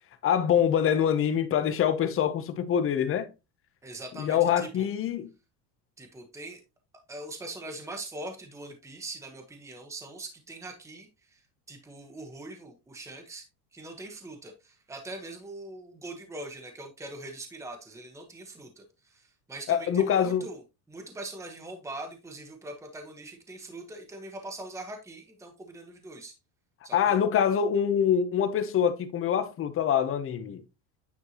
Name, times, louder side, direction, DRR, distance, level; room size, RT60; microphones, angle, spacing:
voice 1, 0.2-3.3 4.2-5.3 19.7-20.5 26.9-30.6, left 8 dB, 30° left, 0.8 m, -25 dB
voice 2, 3.8-4.9 6.0-6.6 7.1-11.4 11.7-13.5 13.7-20.6 20.9-26.3 26.8-27.2, right 2 dB, 5° right, 1.2 m, -42 dB
9.6 x 4.4 x 2.9 m
cardioid pair, 145°, 43 cm